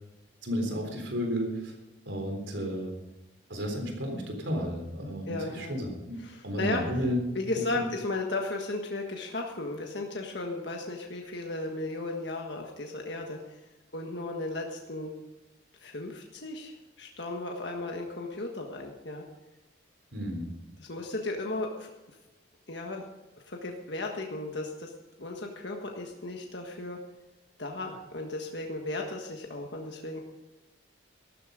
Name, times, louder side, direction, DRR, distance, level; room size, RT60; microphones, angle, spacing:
voice 1, 0.4-1.7 2.1-2.9 3.5-6.2 6.4-7.2 7.6-7.9 20.1-20.5, equal, 65° right, 3 dB, 3.8 m, -32 dB
voice 2, 5.3-5.8 6.2-6.8 7.3-13.6 13.9-15.1 15.8-19.2 20.8-21.9 22.7-23.0 23.5-24.9 25.2-27.0 27.6-30.2, left 2 dB, 60° left, 1 dB, 1.6 m, -35 dB
14.0 x 12.5 x 5.1 m, 1.0 s
head